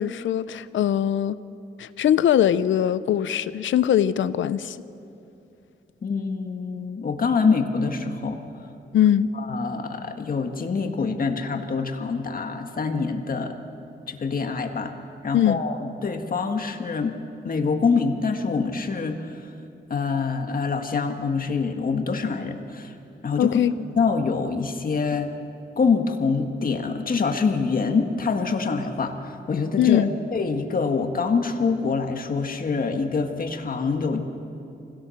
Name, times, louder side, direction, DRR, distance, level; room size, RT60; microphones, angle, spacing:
voice 1, 0.0-1.4 1.8-4.8 8.9-9.3 15.3-15.6 23.4-23.7 29.8-30.1, left 10 dB, 90° left, 16 dB, 0.6 m, -21 dB
voice 2, 6.0-8.4 9.3-13.6 14.1-14.9 15.2-17.2 17.4-19.5 19.9-22.9 23.2-23.6 24.0-25.3 25.8-34.3, left 4 dB, 50° left, 4 dB, 1.7 m, -25 dB
24.5 x 17.0 x 6.5 m, 2.7 s
cardioid pair, 100°, 19 cm